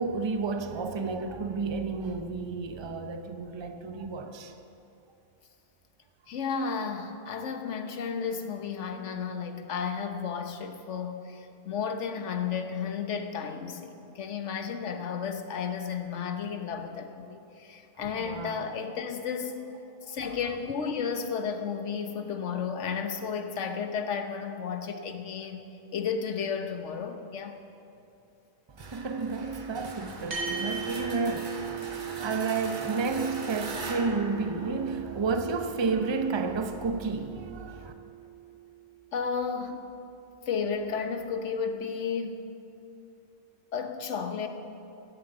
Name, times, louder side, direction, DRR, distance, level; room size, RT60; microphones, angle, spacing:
voice 1, 0.0-4.5 18.1-18.7 28.7-37.9, right 4 dB, 30° right, 0.6 m, -31 dB
voice 2, 6.3-19.6 20.0-27.6 39.1-39.9 40.4-42.4 43.7-44.5, left 6 dB, 75° left, 1.3 m, -33 dB
sound 1, 28.8-35.5, right 3 dB, 45° right, 1.1 m, -41 dB
sound 2, 30.3-39.0, right 7 dB, 65° right, 2.7 m, -39 dB
13.0 x 7.7 x 7.9 m
omnidirectional pair, 1.3 m